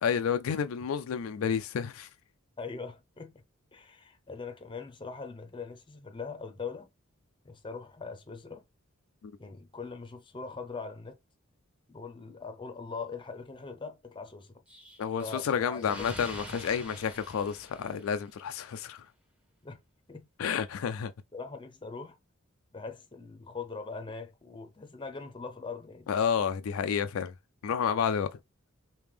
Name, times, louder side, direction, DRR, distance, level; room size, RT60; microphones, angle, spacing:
voice 1, 0.0-2.1 9.2-9.3 15.0-19.0 20.4-21.1 26.1-27.3 27.6-28.3, left 7 dB, 90° left, 0.4 m, -30 dB
voice 2, 2.6-3.4 3.7-6.9 7.4-8.6 9.4-11.2 11.9-14.5 15.2-16.2 19.6-19.8 20.1-20.3 21.3-22.2 22.7-26.1, left 4 dB, 25° left, 0.6 m, -41 dB
Explosion, 14.7-18.5, equal, 5° right, 0.9 m, -46 dB
3.3 x 2.9 x 3.4 m
head